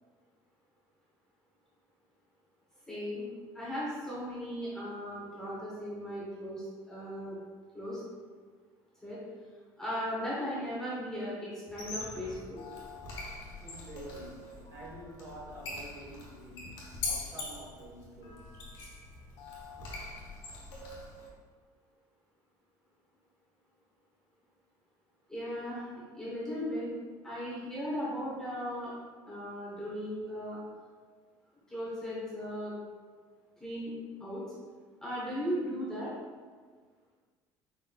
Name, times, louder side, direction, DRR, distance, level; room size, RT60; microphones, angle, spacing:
voice 1, 2.9-3.3 3.5-7.4 7.7-8.0 9.0-9.2 9.8-12.7 25.3-26.9 27.2-28.9 29.3-30.6 31.7-32.8 33.6-33.9 34.2-34.4 35.0-36.1, equal, 5° left, -8 dB, 1.0 m, -37 dB
Squeak, 11.7-21.3, left 3 dB, 60° left, 1.3 m, -42 dB
voice 2, 13.6-18.6, equal, 35° right, -6 dB, 1.3 m, -48 dB
5.0 x 4.3 x 2.3 m, 1.5 s
cardioid pair, 175°, 9 cm